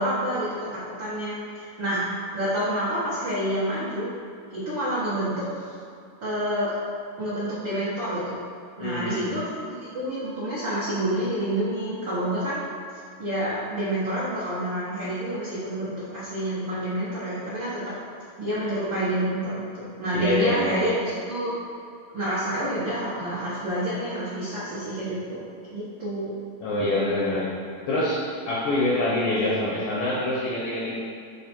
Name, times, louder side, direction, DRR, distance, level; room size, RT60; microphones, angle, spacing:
voice 1, 0.0-4.1 4.5-5.7 6.2-6.7 7.2-8.4 8.8-12.6 13.2-17.8 18.4-21.5 22.1-25.4 25.7-26.3, right 1 dB, 70° right, -12 dB, 1.1 m, -28 dB
voice 2, 8.8-9.3 20.1-20.8 26.6-27.6 27.9-30.9, left 1 dB, 70° left, -5 dB, 2.0 m, -25 dB
8.4 x 3.3 x 4.4 m, 2.4 s
omnidirectional pair, 4.5 m